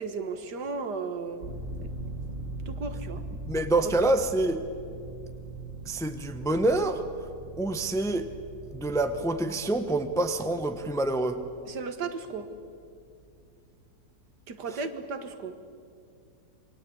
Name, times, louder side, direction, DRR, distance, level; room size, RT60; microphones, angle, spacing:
voice 1, 0.0-1.5 1.8-1.9 2.7-3.2 3.8-3.9 11.7-12.5 14.5-15.6, right 4 dB, 70° right, 2.0 m, -35 dB
sound 1, 1.4-12.7 13.0-13.1, right 2 dB, 45° right, 2.7 m, -41 dB
voice 2, 3.5-4.6 5.8-7.0 7.6-8.3 8.7-11.4, right 2 dB, ahead, 0.9 m, -26 dB
28.0 x 23.0 x 8.5 m
omnidirectional pair, 1.9 m